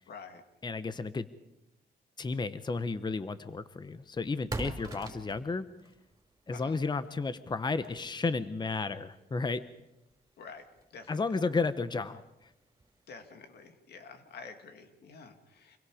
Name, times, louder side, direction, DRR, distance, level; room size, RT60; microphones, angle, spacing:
voice 1, 0.1-0.4 4.8-5.2 6.5-6.8 10.4-11.4 13.1-15.8, left 5 dB, 80° left, 7 dB, 2.6 m, -49 dB
voice 2, 0.6-1.3 2.2-5.7 6.5-9.6 11.1-12.5, left 4 dB, 25° left, 13 dB, 0.9 m, -33 dB
sound 1, 3.0-13.2, right 2 dB, 20° right, 5.3 m, -48 dB
27.5 x 22.5 x 5.0 m, 0.91 s
cardioid pair, 95°, 17 cm